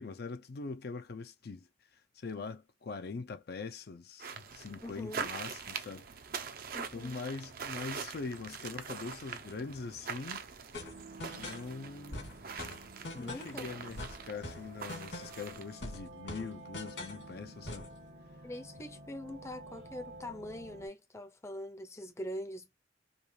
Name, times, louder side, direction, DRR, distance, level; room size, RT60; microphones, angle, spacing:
voice 1, 0.0-1.7 1.9-6.1 6.9-10.4 11.4-12.4 13.1-17.9, left 4 dB, 60° left, 0.5 m, -42 dB
sound 1, 4.2-15.8, right 6 dB, 55° right, 0.7 m, -43 dB
voice 2, 4.8-5.3 6.7-7.2 13.2-13.7 18.4-22.8, left 1 dB, 15° left, 0.6 m, -43 dB
sound 2, 10.7-11.7 12.1-13.6 14.0-15.5 15.8-17.3 17.7-18.0, left 2 dB, 85° left, 2.8 m, -43 dB
sound 3, 10.7-20.9, right 1 dB, 75° right, 1.5 m, -52 dB
5.2 x 2.4 x 3.1 m
head